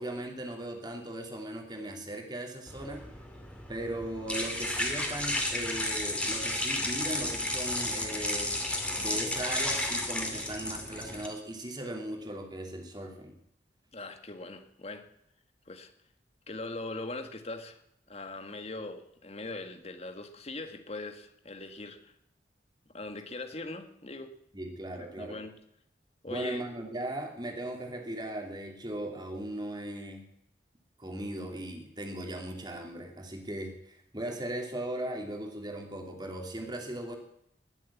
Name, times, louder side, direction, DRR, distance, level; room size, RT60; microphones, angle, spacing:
voice 1, 0.0-3.0 3.7-8.6 8.9-13.4 24.5-25.4 26.3-30.2 31.0-37.2, right 1 dB, 25° right, 3 dB, 2.8 m, -38 dB
sound 1, 2.7-11.3, left 1 dB, 5° left, 2.4 m, -33 dB
voice 2, 13.9-15.1 15.7-15.9 16.5-17.8 18.1-22.1 22.9-24.3 25.0-25.6 26.2-26.6, left 2 dB, 35° left, 7 dB, 1.6 m, -41 dB
20.0 x 7.7 x 8.5 m, 0.76 s
head